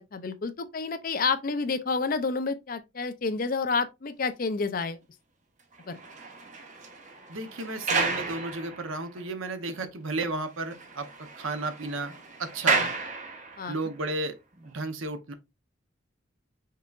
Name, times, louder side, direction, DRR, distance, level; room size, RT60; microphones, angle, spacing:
voice 1, 0.0-5.0 5.9-6.0 12.7-12.9 13.6-13.8, left 4 dB, 45° left, 0.5 m, -29 dB
sound 1, 5.7-9.4 9.7-9.8 10.2-10.3 10.6-13.8 14.5-14.7, right 4 dB, 40° right, 0.9 m, -32 dB
voice 2, 7.3-11.1 11.4-12.9 13.7-14.4 14.6-15.3, right 2 dB, 80° right, 0.8 m, -33 dB
5.5 x 3.7 x 2.4 m
head